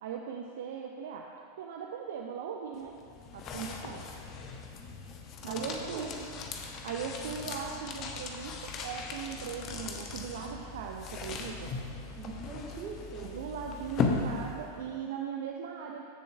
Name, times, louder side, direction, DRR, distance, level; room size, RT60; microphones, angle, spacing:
voice 1, 0.0-1.3 1.6-3.0 3.3-4.1 5.4-6.1 6.8-11.7 13.2-16.1, right 7 dB, 55° right, 1 dB, 0.5 m, -39 dB
sound 1, 2.7-14.9, left 4 dB, 35° left, 0.7 m, -38 dB
voice 2, 5.5-6.3 12.2-13.4, right 4 dB, 35° right, -1 dB, 1.4 m, -42 dB
14.0 x 6.9 x 2.3 m, 2.5 s
figure-of-eight pair, 90°, 0 cm